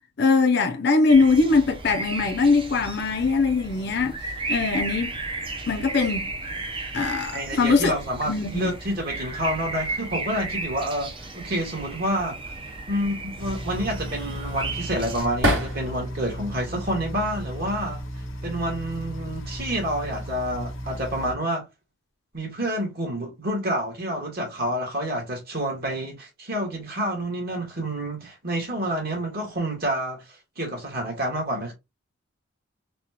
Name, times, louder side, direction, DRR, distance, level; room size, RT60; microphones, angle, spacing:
voice 1, 0.2-4.1 4.5-5.1 5.7-6.3 6.9-7.9 8.3-8.7, left 4 dB, 55° left, 0.5 m, -21 dB
sound 1, 1.1-15.3, right 3 dB, 25° right, 0.6 m, -34 dB
voice 2, 7.3-12.5 12.9-18.0 18.4-21.7 22.3-31.7, right 1 dB, 50° right, 1.6 m, -28 dB
sound 2, 13.4-21.3, equal, 75° left, 0.9 m, -35 dB
sound 3, 13.7-16.2 16.6-17.5 18.4-18.7 19.1-19.8, equal, 70° right, 2.1 m, -30 dB
4.1 x 2.3 x 2.8 m
head